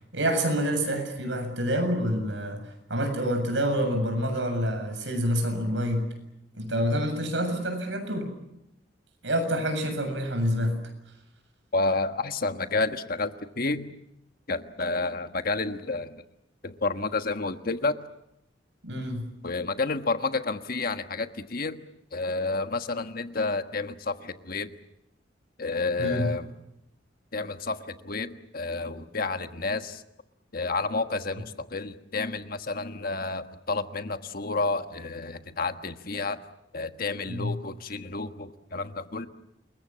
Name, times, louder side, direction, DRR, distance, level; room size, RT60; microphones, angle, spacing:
voice 1, 0.1-2.6 2.9-6.1 6.5-8.3 9.2-10.8 18.8-19.2 26.0-26.3 37.3-37.5, equal, 75° right, 6 dB, 7.4 m, -27 dB
voice 2, 11.7-13.9 14.5-16.2 16.6-18.0 19.4-21.8 22.1-24.7 25.6-26.5 27.3-30.0 30.5-36.4 36.7-39.3, left 3 dB, 50° left, 8 dB, 1.4 m, -30 dB
29.0 x 22.5 x 7.5 m, 0.83 s
head